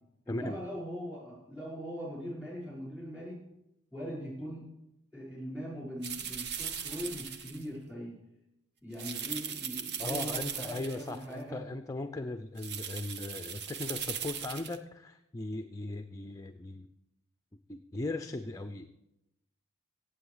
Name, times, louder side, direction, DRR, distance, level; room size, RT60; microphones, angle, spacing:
voice 1, 0.3-3.4 3.9-4.6 5.1-8.1 8.8-11.6, equal, 5° right, -4 dB, 5.6 m, -41 dB
sound 1, 6.0-7.6 8.9-11.2 12.6-14.8, right 7 dB, 50° right, 0.8 m, -38 dB
voice 2, 10.0-16.9 17.7-18.9, left 2 dB, 15° left, 8 dB, 0.4 m, -38 dB
16.5 x 7.9 x 4.9 m, 0.87 s
head